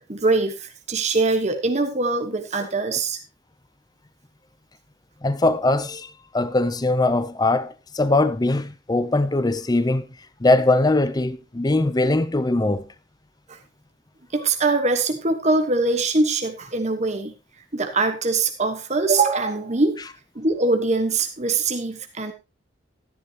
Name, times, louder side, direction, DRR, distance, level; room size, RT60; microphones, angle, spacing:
voice 1, 0.1-3.2 13.5-13.6 14.3-17.3 17.7-20.0 20.3-22.3, right 3 dB, 35° right, 1.3 m, -22 dB
voice 2, 5.2-10.1 10.4-12.9, left 2 dB, 20° left, 0.6 m, -21 dB
13.0 x 11.0 x 2.9 m
head